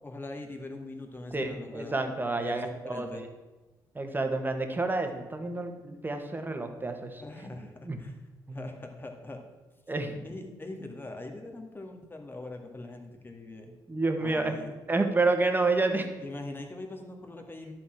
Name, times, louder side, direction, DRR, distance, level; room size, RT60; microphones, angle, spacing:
voice 1, 0.0-1.9 2.4-3.2 7.2-8.1 8.5-9.4 10.2-13.7 14.2-14.7 16.2-17.7, left 2 dB, 20° left, 3 dB, 2.0 m, -42 dB
voice 2, 1.3-3.3 3.9-7.2 7.8-8.0 8.5-8.7 9.9-10.3 13.9-14.6 14.9-16.1, right 3 dB, 20° right, 5 dB, 1.6 m, -29 dB
11.0 x 4.3 x 7.7 m, 1.2 s
supercardioid pair, 60°, 9 cm